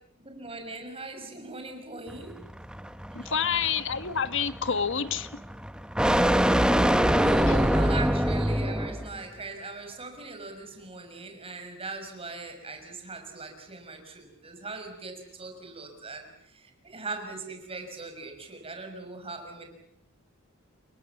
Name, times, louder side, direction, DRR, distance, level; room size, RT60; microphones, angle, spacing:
voice 1, 0.2-2.4 3.2-3.3 6.9-19.7, right 3 dB, 25° right, 5 dB, 6.1 m, -40 dB
sound 1, 2.1-9.1, equal, 5° right, 1.0 m, -25 dB
voice 2, 3.1-5.3 7.5-7.6, left 7 dB, 65° left, 11 dB, 1.5 m, -28 dB
29.0 x 23.0 x 7.3 m, 0.71 s
head